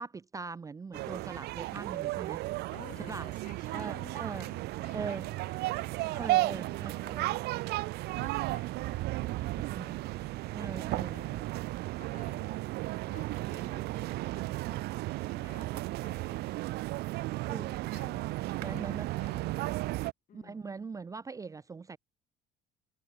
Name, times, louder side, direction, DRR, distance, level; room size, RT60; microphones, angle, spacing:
voice 1, 0.0-2.5 3.1-3.3 3.7-4.5 4.9-5.3 6.1-7.4 9.7-9.9 10.5-11.3 17.5-17.7 18.6-19.1 20.3-22.0, right 4 dB, 20° right, 0.6 m, -41 dB
sound 1, 0.9-20.1, right 19 dB, 65° right, 0.4 m, -34 dB
voice 2, 2.7-7.8 8.1-10.5 11.1-11.6 12.0-12.7 13.1-16.5 17.4-18.4 18.6-20.0 20.3-20.7, left 10 dB, 45° left, 6.3 m, -55 dB
cardioid pair, 130°, 18 cm